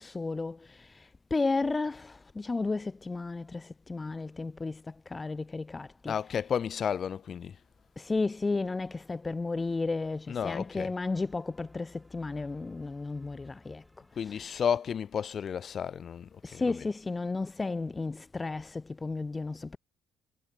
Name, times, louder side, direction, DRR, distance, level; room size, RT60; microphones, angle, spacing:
voice 1, 0.0-6.1 8.0-13.8 14.3-14.5 16.4-19.8, left 3 dB, 15° left, 0.9 m, -33 dB
voice 2, 6.1-7.6 10.3-10.9 14.1-16.9, left 7 dB, 30° left, 1.2 m, -32 dB
sound 1, 6.3-17.4, right 1 dB, 5° right, 7.7 m, -70 dB
cardioid pair, 175°, 0 cm